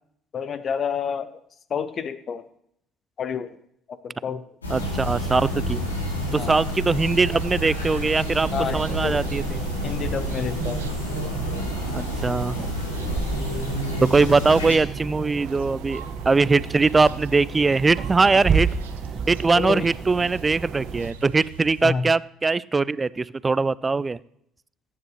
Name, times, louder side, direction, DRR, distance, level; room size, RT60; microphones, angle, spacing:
voice 1, 0.3-1.3 1.7-2.5 3.2-3.5 3.9-4.4 6.4-6.6 8.5-9.2 9.8-10.8 19.6-19.9 21.8-22.1, left 6 dB, 45° left, 13 dB, 0.7 m, -29 dB
sound 1, 4.6-14.8, equal, 85° left, 3.0 m, -29 dB
voice 2, 4.7-5.8 6.3-9.6 11.9-12.6 14.1-18.7 19.3-24.2, right 3 dB, 25° right, 20 dB, 0.4 m, -21 dB
sound 2, 7.0-21.9, right 7 dB, 80° right, 0.9 m, -42 dB
sound 3, 8.4-21.1, right 5 dB, 45° right, 1.0 m, -32 dB
22.5 x 9.8 x 3.1 m, 0.73 s
figure-of-eight pair, 55°, 0 cm